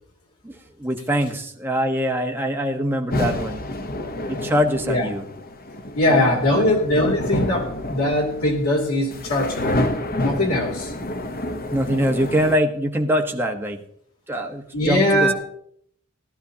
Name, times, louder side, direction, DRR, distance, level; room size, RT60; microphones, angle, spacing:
voice 1, 0.4-3.6 4.3-5.2 6.1-6.8 11.7-13.8 14.3-15.3, equal, 10° right, 2 dB, 1.1 m, -23 dB
sound 1, 3.1-12.6, left 1 dB, 45° left, 0.9 m, -28 dB
voice 2, 5.9-9.9 10.2-10.9 14.7-15.3, left 1 dB, 90° left, -1 dB, 2.9 m, -21 dB
18.0 x 11.5 x 2.8 m, 0.65 s
head